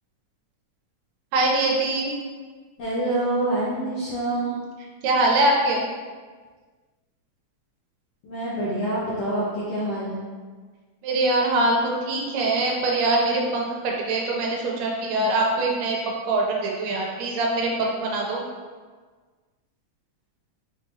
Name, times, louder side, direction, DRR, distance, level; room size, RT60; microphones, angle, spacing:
voice 1, 1.3-2.1 5.0-5.9 11.0-18.4, right 2 dB, 90° right, -2 dB, 2.3 m, -23 dB
voice 2, 2.8-4.5 8.2-10.2, right 1 dB, 70° left, -9 dB, 1.6 m, -26 dB
5.9 x 2.8 x 2.7 m, 1.5 s
omnidirectional pair, 3.8 m